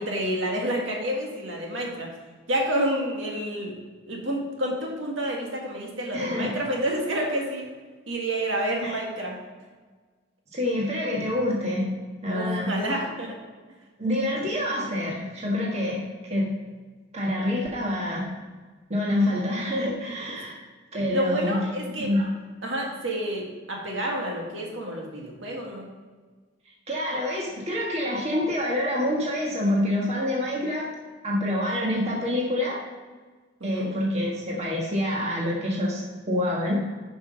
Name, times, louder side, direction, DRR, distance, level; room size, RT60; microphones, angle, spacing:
voice 1, 0.0-2.1 2.5-3.7 4.1-7.7 8.1-9.4 12.3-13.4 21.1-22.1 22.6-25.9 33.6-33.9, right 1 dB, 65° right, -1 dB, 1.8 m, -29 dB
voice 2, 6.1-6.5 8.8-9.0 10.5-11.9 12.2-12.7 14.0-16.0 16.3-16.5 17.1-18.3 18.9-20.5 20.9-21.6 22.0-22.3 26.9-30.9 31.2-32.8 33.6-36.8, left 1 dB, 30° right, -3 dB, 1.5 m, -26 dB
9.4 x 5.6 x 5.1 m, 1.4 s
head